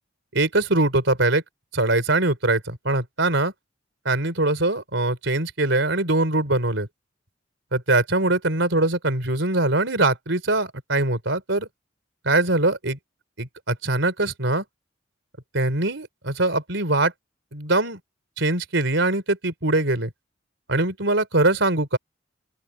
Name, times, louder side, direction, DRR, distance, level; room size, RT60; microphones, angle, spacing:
voice 1, 0.3-1.4 1.7-3.5 4.0-6.9 7.7-11.7 12.2-13.0 13.4-14.6 15.5-17.1 17.5-18.0 18.4-20.1 20.7-22.0, right 2 dB, 65° right, 4.5 m, -22 dB
open air
head